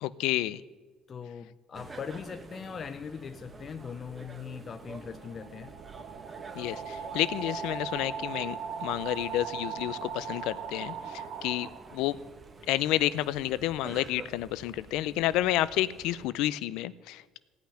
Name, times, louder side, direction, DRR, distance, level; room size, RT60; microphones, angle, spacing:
voice 1, 0.0-0.6 6.5-12.2 12.7-17.4, left 14 dB, 80° left, 0.6 m, -30 dB
voice 2, 1.1-5.8, left 6 dB, 40° left, 0.6 m, -40 dB
sound 1, 1.7-16.3, right 3 dB, 25° right, 1.8 m, -49 dB
sound 2, 4.6-12.3, right 6 dB, 60° right, 1.7 m, -39 dB
16.5 x 5.9 x 9.9 m
cardioid pair, 105°, 0 cm